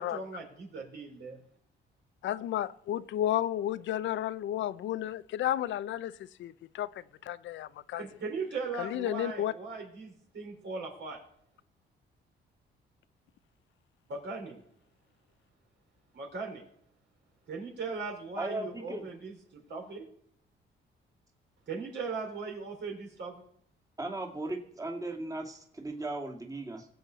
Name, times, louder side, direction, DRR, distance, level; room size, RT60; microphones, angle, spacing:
voice 1, 0.0-1.4 8.0-11.2 14.1-14.6 16.1-16.6 17.5-20.1 21.7-23.4, right 4 dB, 60° right, 4.4 m, -39 dB
voice 2, 2.2-6.1 6.4-8.0 8.8-9.5, left 12 dB, 70° left, 0.6 m, -32 dB
voice 3, 18.4-19.0 24.0-26.9, right 2 dB, 15° right, 2.2 m, -37 dB
20.0 x 7.8 x 4.0 m
cardioid pair, 90°, 20 cm